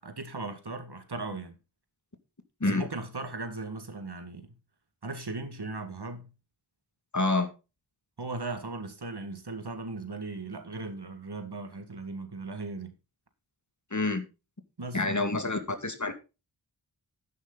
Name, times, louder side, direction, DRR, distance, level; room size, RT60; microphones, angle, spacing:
voice 1, 0.0-1.6 2.7-4.6 5.0-6.3 8.2-12.9 14.8-15.0, right 3 dB, 60° right, 2.0 m, -38 dB
voice 2, 7.1-7.5 13.9-14.2 14.9-16.1, left 2 dB, 40° left, 2.2 m, -27 dB
11.0 x 9.3 x 4.0 m
wide cardioid pair, 50°, 45 cm